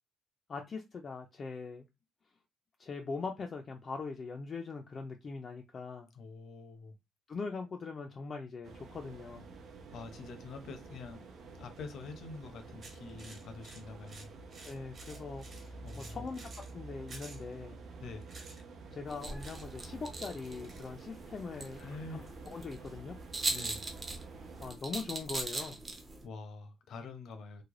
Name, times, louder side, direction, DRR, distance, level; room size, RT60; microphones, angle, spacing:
voice 1, 0.5-1.9 2.8-6.1 7.3-9.5 14.6-17.8 18.9-23.2 24.6-25.8, left 4 dB, 30° left, 0.4 m, -41 dB
voice 2, 6.1-7.0 9.9-11.3 11.6-14.3 15.8-16.3 18.0-18.3 21.8-22.3 23.5-23.9 26.2-27.6, left 3 dB, 65° left, 0.7 m, -46 dB
sound 1, 8.6-24.7, right 3 dB, 55° right, 0.7 m, -50 dB
sound 2, 12.8-16.7 17.1-17.4 18.2-18.6 19.4-19.7 20.0-20.1 20.4-20.9, right 3 dB, 40° right, 1.1 m, -52 dB
sound 3, 19.1-26.3, right 2 dB, 20° right, 0.6 m, -41 dB
3.2 x 2.1 x 3.6 m
cardioid pair, 155°, 0 cm